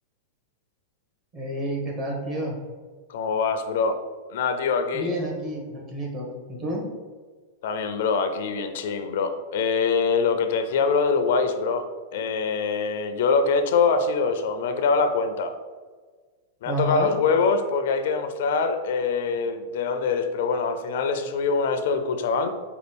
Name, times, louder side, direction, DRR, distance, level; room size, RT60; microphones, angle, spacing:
voice 1, 1.3-2.6 4.9-6.8 16.6-17.1, equal, 35° right, 0 dB, 1.2 m, -30 dB
voice 2, 3.1-4.0 4.3-5.1 7.6-15.5 16.6-22.5, left 5 dB, 70° left, 8 dB, 0.4 m, -24 dB
5.2 x 2.3 x 3.4 m, 1.4 s
hypercardioid pair, 130°, 0 cm